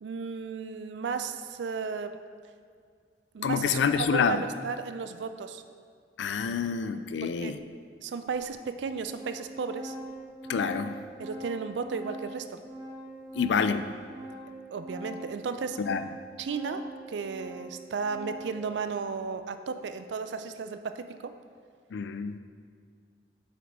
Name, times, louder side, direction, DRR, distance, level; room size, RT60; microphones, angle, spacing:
voice 1, 0.0-2.2 3.3-5.6 7.2-7.6 8.0-10.0 11.2-12.6 14.7-15.8 16.4-21.3, right 5 dB, 90° right, 10 dB, 0.4 m, -34 dB
voice 2, 3.4-4.4 6.2-7.6 10.5-11.0 13.3-13.9 15.8-16.0 21.9-22.4, left 6 dB, 90° left, 10 dB, 0.4 m, -27 dB
Organ, 7.4-7.5 8.3-8.4 8.8-18.7, right 1 dB, 20° right, 1.0 m, -43 dB
7.2 x 6.1 x 3.6 m, 2.1 s
head